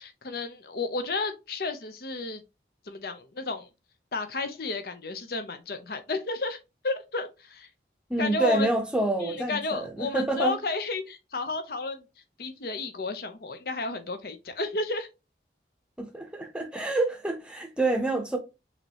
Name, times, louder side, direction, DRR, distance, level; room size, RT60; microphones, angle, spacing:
voice 1, 0.0-2.4 2.9-3.7 4.1-6.6 6.8-7.7 8.2-8.7 9.2-12.0 12.4-15.1, left 3 dB, 55° left, 0.7 m, -32 dB
voice 2, 8.1-10.5 16.0-18.4, right 2 dB, 5° right, 0.8 m, -27 dB
5.8 x 3.0 x 2.9 m
head